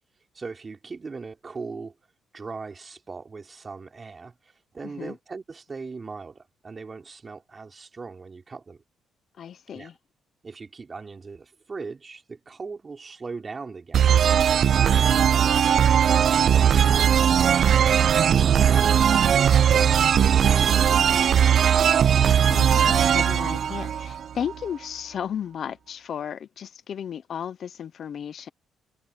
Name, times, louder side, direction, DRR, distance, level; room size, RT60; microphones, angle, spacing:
voice 1, 0.3-1.9 2.3-8.8 9.7-9.9 10.4-15.4 16.1-17.9 18.3-21.2, right 4 dB, 35° right, 4.3 m, -40 dB
voice 2, 4.8-5.2 9.4-10.0 21.9-28.5, left 8 dB, 60° left, 0.8 m, -34 dB
sound 1, 13.9-24.5, right 8 dB, 60° right, 0.5 m, -19 dB
cardioid pair, 90°, 0 cm